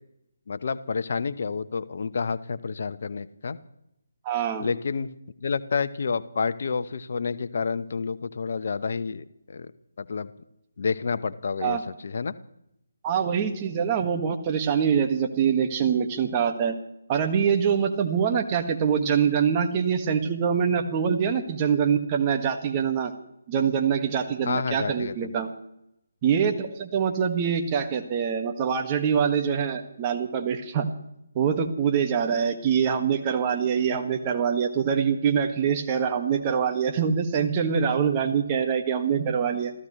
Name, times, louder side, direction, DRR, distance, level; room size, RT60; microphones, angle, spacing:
voice 1, 0.5-3.6 4.6-5.1 5.4-9.7 10.0-10.3 10.8-12.3 24.4-25.3, left 5 dB, 50° left, 12 dB, 1.0 m, -29 dB
voice 2, 4.3-4.7 11.6-11.8 13.0-16.8 17.1-23.1 23.5-25.5 26.2-30.9 31.4-39.7, right 7 dB, 25° right, 4 dB, 1.8 m, -24 dB
28.0 x 15.5 x 3.3 m, 0.80 s
figure-of-eight pair, 150°, 0 cm